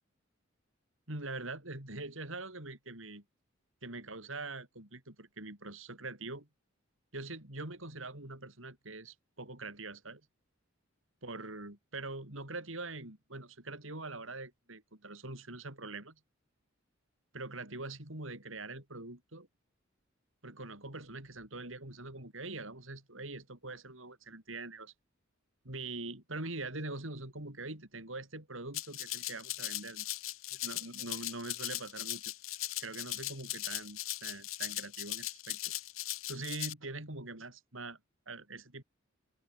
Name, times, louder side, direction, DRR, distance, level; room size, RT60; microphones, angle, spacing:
voice 1, 1.1-3.2 3.8-6.5 7.1-10.2 11.2-16.2 17.3-19.5 20.4-24.9 25.6-30.1 30.5-32.2 32.8-35.6 36.3-38.0 38.3-38.8, right 2 dB, 70° right, 5.9 m, -43 dB
Rattle (instrument), 28.7-36.7, left 16 dB, 90° left, 1.2 m, -39 dB
open air
head